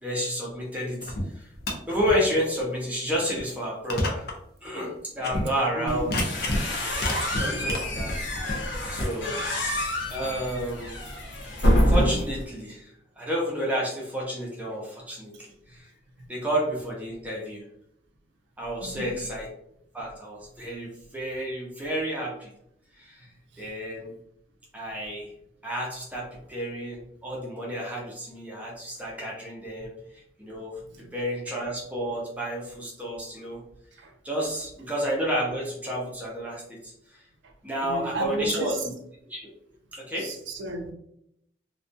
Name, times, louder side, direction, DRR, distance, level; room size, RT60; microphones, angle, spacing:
voice 1, 0.0-1.5 1.9-4.3 4.6-6.2 7.3-8.1 8.9-9.4 10.1-10.9 11.9-12.9 13.2-15.3 15.7-15.9 16.3-17.6 18.6-19.5 19.9-22.5 23.0-23.3 23.6-24.1 24.7-25.3 25.6-29.9 30.4-30.7 31.1-33.6 34.2-36.9 37.6-38.9 39.3-39.5 39.9-40.3, equal, 10° right, 0.5 m, -30 dB
sound 1, 1.0-1.2 1.5-2.1 2.6-2.7 3.4-3.5 3.9-4.4 4.7-4.8 5.2-5.5 6.0-6.6 6.9-9.1, left 1 dB, 55° left, 0.5 m, -29 dB
voice 2, 5.7-6.2 7.3-7.7 18.8-19.2 30.9-31.1 34.0-34.1 37.8-38.8 40.2-40.9, right 2 dB, 80° right, 0.5 m, -33 dB
sound 2, 5.9-12.4, equal, 85° left, 0.7 m, -27 dB
2.3 x 2.2 x 2.5 m
head